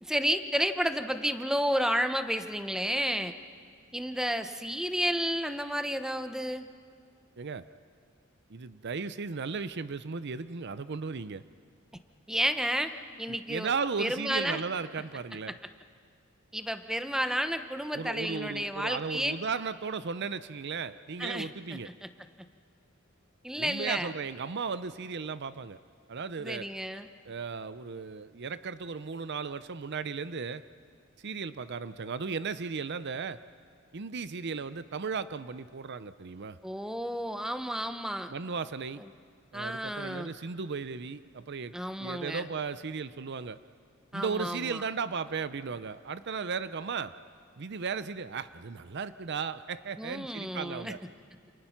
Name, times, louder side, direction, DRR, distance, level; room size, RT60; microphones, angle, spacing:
voice 1, 0.0-3.3 3.9-6.7 12.3-12.9 13.2-13.7 14.0-14.6 16.5-19.4 21.2-22.1 23.4-24.1 26.4-27.1 36.6-38.3 39.5-40.3 41.7-42.4 44.1-44.8 50.0-50.9, equal, 5° right, 9 dB, 0.9 m, -31 dB
voice 2, 8.5-11.4 13.3-15.6 17.9-21.9 23.6-25.8 26.1-26.7 27.2-30.6 31.2-33.4 33.9-36.6 38.3-39.0 39.5-41.7 42.0-43.6 44.1-47.1 47.6-51.0, right 5 dB, 55° right, 13 dB, 0.6 m, -35 dB
28.5 x 28.0 x 5.9 m, 2.2 s
head